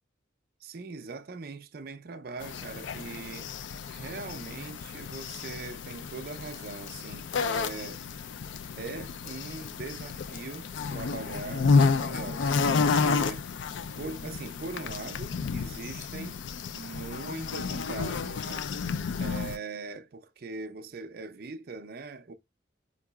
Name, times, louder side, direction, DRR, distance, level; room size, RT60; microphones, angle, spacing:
voice 1, 0.6-3.5 3.9-8.0 8.8-13.5 14.0-16.4 16.7-18.7 19.2-22.3, right 3 dB, 50° right, 0.4 m, -41 dB
sound 1, 2.4-19.6, left 5 dB, 65° left, 0.4 m, -31 dB
4.7 x 2.8 x 2.2 m
head